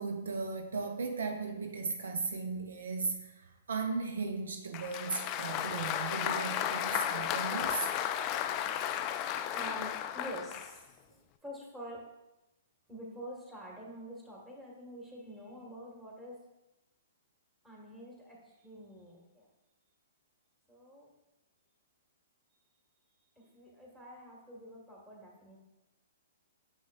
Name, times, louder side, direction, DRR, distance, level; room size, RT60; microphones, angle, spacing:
voice 1, 0.0-7.9 8.3-8.4, right 4 dB, 75° right, 0.6 m, -36 dB
Applause, 4.7-10.7, left 10 dB, 35° left, 0.3 m, -34 dB
voice 2, 8.5-11.0 11.4-12.1 12.9-16.4 17.6-19.5 20.7-21.1 23.4-25.6, equal, 10° right, 1.8 m, -47 dB
6.6 x 6.1 x 2.4 m
hypercardioid pair, 120°, 0 cm